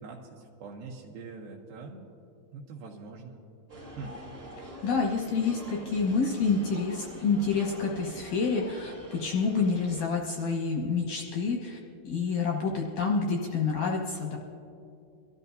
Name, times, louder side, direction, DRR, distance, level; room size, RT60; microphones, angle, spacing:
voice 1, 0.0-2.1 2.5-3.4 4.0-4.1 4.6-4.7, right 4 dB, 75° right, -2 dB, 2.3 m, -43 dB
sound 1, 3.7-10.0, right 1 dB, 30° right, 1.4 m, -46 dB
voice 2, 4.8-11.8 12.0-14.4, left 4 dB, 70° left, -1 dB, 2.0 m, -28 dB
24.0 x 13.0 x 2.7 m, 2.6 s
omnidirectional pair, 5.0 m